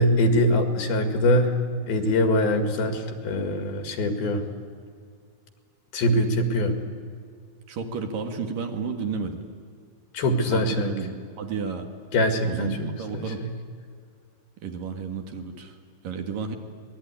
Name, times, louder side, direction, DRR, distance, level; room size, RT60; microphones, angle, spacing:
voice 1, 0.0-1.6 1.9-4.4 5.9-6.7 10.1-10.9 12.1-12.9 13.1-13.5, left 1 dB, 80° left, 6 dB, 3.9 m, -23 dB
voice 2, 7.7-9.4 10.5-11.9 12.4-13.4 14.6-15.7 16.0-16.6, right 6 dB, 65° right, 5 dB, 3.3 m, -32 dB
25.0 x 20.0 x 10.0 m, 2.1 s
omnidirectional pair, 4.4 m